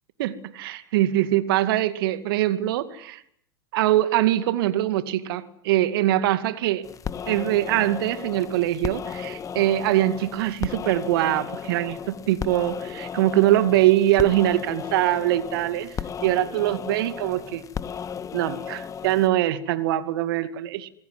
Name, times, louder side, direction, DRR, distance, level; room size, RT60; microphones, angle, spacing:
voice 1, 0.2-3.2 3.7-6.8 7.3-15.9 16.2-17.6 18.3-20.9, right 14 dB, 60° right, 12 dB, 2.4 m, -23 dB
sound 1, 6.8-19.3, left 7 dB, 25° left, 1.6 m, -35 dB
27.0 x 22.0 x 9.7 m, 0.70 s
figure-of-eight pair, 90°, 13 cm